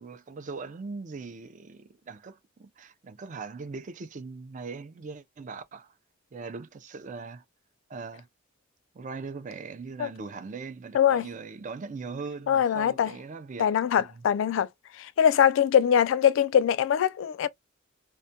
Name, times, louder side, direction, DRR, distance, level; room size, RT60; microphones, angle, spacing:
voice 1, 0.0-5.9 6.3-7.4 7.9-8.3 8.9-14.2, right 4 dB, 40° right, 0.4 m, -40 dB
voice 2, 10.9-11.3 12.5-13.1 13.6-14.7 15.2-17.5, left 9 dB, 65° left, 0.3 m, -22 dB
2.2 x 2.2 x 2.7 m
head